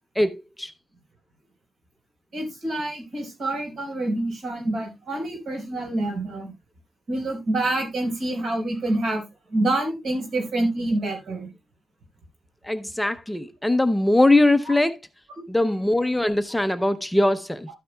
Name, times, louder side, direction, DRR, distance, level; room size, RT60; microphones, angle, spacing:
voice 1, 0.2-0.7 12.6-14.9 15.5-17.7, left 2 dB, 5° left, 0.5 m, -21 dB
voice 2, 2.3-6.5 7.1-9.2 9.5-11.5, right 2 dB, 70° right, 4.7 m, -27 dB
13.0 x 9.2 x 2.3 m
wide cardioid pair, 150°, 0 cm